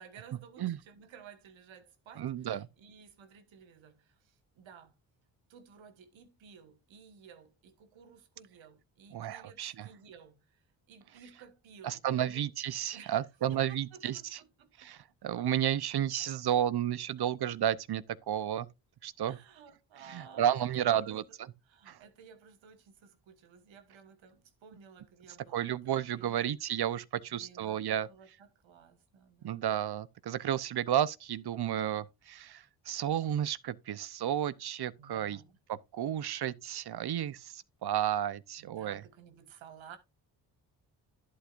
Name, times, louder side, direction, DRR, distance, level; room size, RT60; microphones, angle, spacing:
voice 1, 0.0-4.9 5.5-12.5 12.9-14.9 19.3-21.4 21.6-26.4 27.3-29.7 35.0-35.6 38.6-40.0, right 7 dB, 80° right, 1.6 m, -55 dB
voice 2, 2.2-2.7 9.1-9.7 11.8-14.4 14.8-18.7 19.0-19.4 20.1-21.2 21.9-22.0 25.5-28.1 29.4-35.4 35.7-39.0, right 10 dB, 55° right, 0.8 m, -32 dB
11.0 x 8.6 x 2.5 m
supercardioid pair, 55°, 45 cm